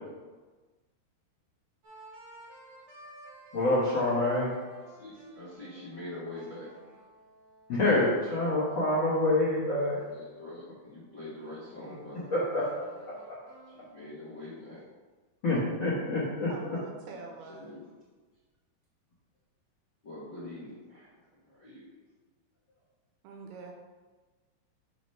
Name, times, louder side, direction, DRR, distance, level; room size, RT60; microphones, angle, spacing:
sound 1, 1.8-9.2 9.9-14.4, right 1 dB, 65° right, 1.6 m, -53 dB
voice 1, 3.5-4.5 7.7-10.0 12.3-13.4 15.4-16.5, left 2 dB, 75° left, -9 dB, 1.1 m, -27 dB
voice 2, 5.0-6.9 10.1-12.3 13.7-14.8 17.6-17.9 20.0-21.9, left 1 dB, 45° left, -12 dB, 1.5 m, -44 dB
voice 3, 16.5-17.7 23.2-23.7, right 4 dB, 85° right, 1 dB, 2.6 m, -44 dB
6.0 x 3.1 x 5.4 m, 1.3 s
omnidirectional pair, 4.6 m